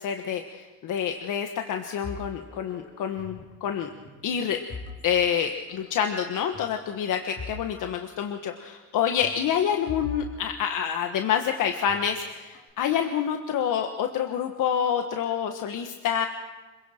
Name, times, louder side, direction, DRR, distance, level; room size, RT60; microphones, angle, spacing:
voice 1, 0.0-3.9 4.2-4.6 5.0-16.3, left 8 dB, 85° left, 4 dB, 1.4 m, -27 dB
sound 1, 2.0-3.6 3.8-5.4 5.7-5.9 6.5-7.7 7.9-8.0 9.2-11.3 11.9-12.7, left 4 dB, 55° left, 4.0 m, -42 dB
27.0 x 23.0 x 4.5 m, 1.3 s
cardioid pair, 140°, 31 cm